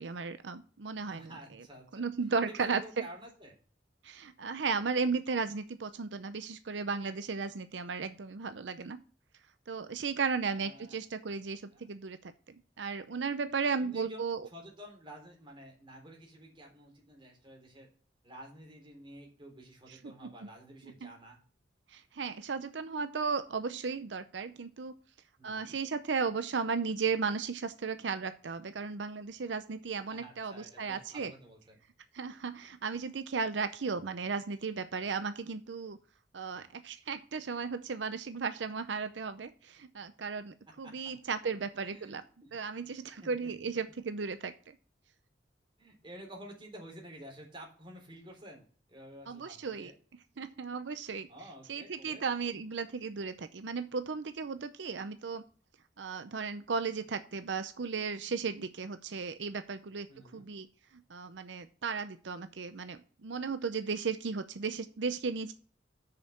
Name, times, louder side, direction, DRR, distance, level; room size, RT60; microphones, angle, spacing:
voice 1, 0.0-1.6 1.9-3.0 4.0-9.0 9.7-12.3 12.8-14.4 19.9-20.3 20.8-21.1 21.9-24.9 25.4-31.3 32.1-36.0 36.3-42.2 42.5-44.5 49.3-49.9 50.4-51.3 51.7-55.4 56.0-60.1 60.3-60.7 61.1-65.5, right 5 dB, 85° right, 11 dB, 0.6 m, -35 dB
voice 2, 1.0-2.0 2.4-3.6 10.5-10.9 11.7-11.9 13.8-14.2 14.5-17.9 18.2-21.4 25.4-25.8 30.1-31.8 40.8-41.1 41.8-43.5 45.8-48.6 48.9-49.9 51.3-52.3 60.1-60.5, right 1 dB, 30° right, 0 dB, 3.6 m, -51 dB
6.7 x 6.5 x 7.1 m, 0.42 s
head